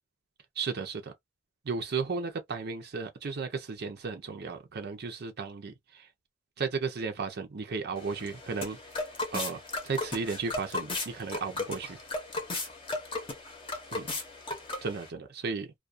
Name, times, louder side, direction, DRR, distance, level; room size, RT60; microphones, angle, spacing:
voice 1, 0.6-1.1 1.6-6.1 6.6-8.8 9.3-12.0 13.9-14.1 14.8-15.7, right 4 dB, 55° right, 0.6 m, -34 dB
sound 1, 8.0-15.1, left 2 dB, 25° left, 0.8 m, -36 dB
2.3 x 2.2 x 2.5 m
head